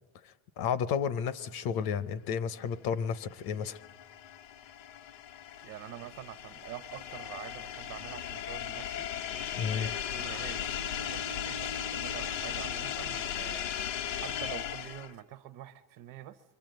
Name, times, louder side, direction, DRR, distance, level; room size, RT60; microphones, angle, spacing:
voice 1, 0.2-3.8 9.5-9.9, left 7 dB, 50° left, 0.8 m, -32 dB
sound 1, 3.3-15.2, left 9 dB, 65° left, 1.1 m, -37 dB
voice 2, 5.6-9.1 9.7-13.8 14.1-16.4, right 12 dB, 45° right, 0.7 m, -46 dB
29.0 x 23.5 x 7.8 m
cardioid pair, 175°, 48 cm